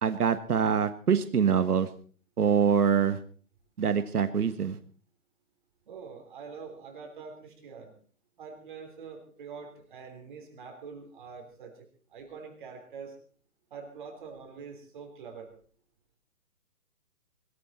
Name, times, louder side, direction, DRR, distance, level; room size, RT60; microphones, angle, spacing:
voice 1, 0.0-1.9 2.4-3.2 3.8-4.8, right 7 dB, 75° right, 11 dB, 1.5 m, -24 dB
voice 2, 5.9-7.9 8.4-13.2 13.7-15.5, right 5 dB, 30° right, 3 dB, 3.4 m, -45 dB
21.5 x 14.5 x 4.3 m, 0.44 s
hypercardioid pair, 165°, 46 cm